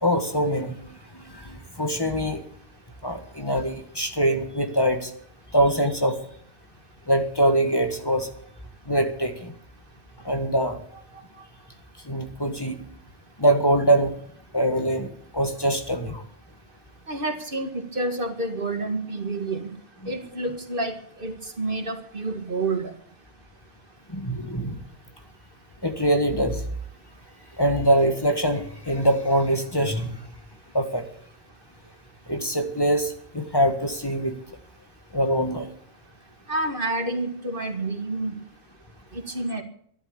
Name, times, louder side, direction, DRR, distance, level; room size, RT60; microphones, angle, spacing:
voice 1, 0.0-0.9 1.3-2.4 3.0-5.1 5.5-6.2 7.1-8.3 8.9-9.5 10.2-10.8 12.0-12.8 13.4-14.1 14.5-16.2 24.1-24.8 25.8-26.6 27.6-30.2 30.7-31.0 32.3-34.3 35.1-35.7, right 1 dB, 25° left, 5 dB, 1.7 m, -23 dB
voice 2, 17.1-19.7 20.1-22.9 36.5-38.3 39.1-39.6, right 2 dB, 55° right, 6 dB, 2.1 m, -29 dB
12.5 x 11.5 x 8.7 m, 0.62 s
omnidirectional pair, 1.1 m